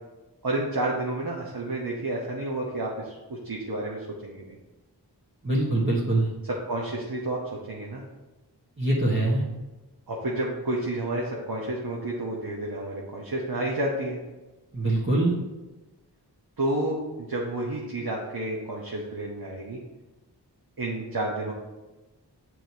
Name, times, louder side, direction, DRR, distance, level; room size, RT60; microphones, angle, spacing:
voice 1, 0.4-4.6 6.7-7.4 7.7-8.0 10.1-14.2 16.6-19.8 20.8-21.5, right 1 dB, 60° right, -3 dB, 1.1 m, -30 dB
voice 2, 5.4-6.3 8.8-9.4 14.7-15.3, right 1 dB, 30° right, -6 dB, 1.3 m, -23 dB
8.7 x 4.7 x 2.8 m, 1.1 s
wide cardioid pair, 60°, 41 cm